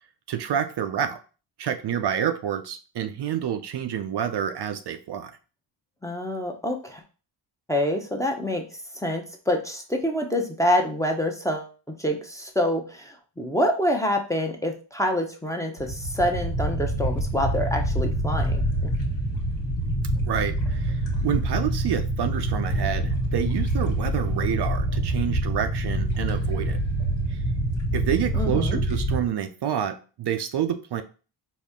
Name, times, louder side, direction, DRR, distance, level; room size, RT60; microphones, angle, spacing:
voice 1, 0.3-1.2 1.6-5.3 20.2-26.8 27.3-27.4 27.9-31.0, right 9 dB, 60° right, 8 dB, 0.5 m, -28 dB
voice 2, 6.0-7.0 7.7-18.9 28.3-28.8, left 1 dB, 5° left, 2 dB, 0.6 m, -27 dB
sound 1, 15.8-29.2, right 1 dB, 70° left, 1.3 m, -26 dB
4.2 x 2.1 x 3.5 m, 0.35 s
cardioid pair, 75°, 47 cm